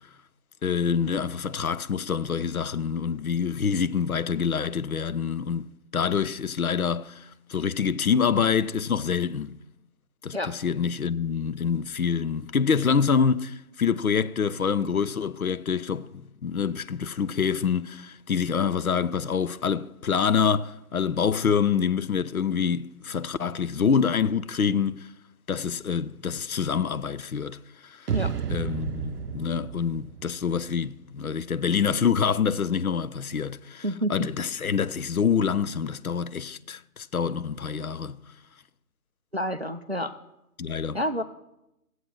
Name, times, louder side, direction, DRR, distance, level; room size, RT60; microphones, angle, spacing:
voice 1, 0.6-9.5 10.2-25.1 25.5-27.6 27.8-28.1 28.5-33.8 34.1-38.2 40.6-41.0, left 6 dB, 65° left, 0.6 m, -26 dB
sound 1, 28.1-31.3, right 7 dB, 90° right, 0.6 m, -32 dB
voice 2, 33.8-34.3 39.3-40.1 40.9-41.2, equal, 45° right, 0.5 m, -28 dB
13.5 x 7.9 x 4.6 m
figure-of-eight pair, 165°, 46 cm